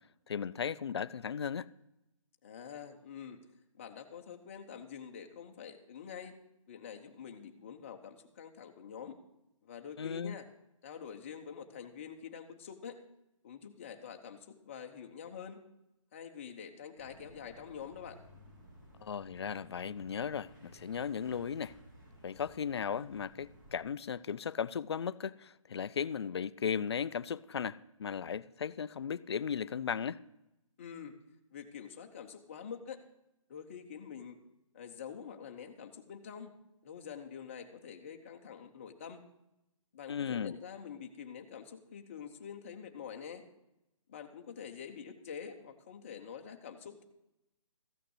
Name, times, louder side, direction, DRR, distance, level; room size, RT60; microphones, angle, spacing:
voice 1, 0.3-1.7 10.0-10.4 19.0-21.8 22.2-30.2 40.1-40.6, left 7 dB, 50° left, 0.4 m, -36 dB
voice 2, 2.4-3.4 3.7-6.4 6.7-9.2 9.6-10.5 10.8-13.0 13.4-15.6 16.1-18.2 30.8-31.1 31.5-33.0 33.5-34.4 34.7-36.5 36.8-39.2 39.9-43.4 44.1-47.0, left 7 dB, 25° left, 0.8 m, -46 dB
sound 1, 17.0-23.8, right 1 dB, 35° right, 3.3 m, -57 dB
14.5 x 6.6 x 7.8 m
hypercardioid pair, 175°, 17 cm